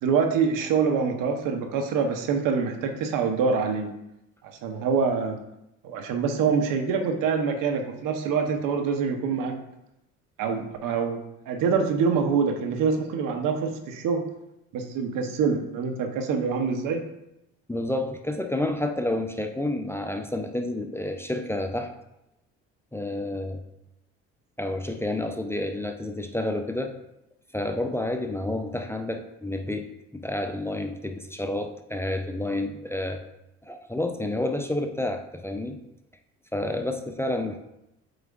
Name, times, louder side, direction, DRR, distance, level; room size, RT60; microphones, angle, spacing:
voice 1, 0.0-3.9 4.6-5.4 5.8-9.6 10.4-14.3 14.7-17.0, right 5 dB, 65° right, 5 dB, 1.0 m, -25 dB
voice 2, 17.7-21.9 22.9-23.6 24.6-26.9 27.5-29.9 30.1-33.2 33.6-35.8 36.5-37.6, left 1 dB, 5° left, 5 dB, 0.6 m, -29 dB
7.9 x 4.9 x 2.5 m, 0.86 s
hypercardioid pair, 60°, 35 cm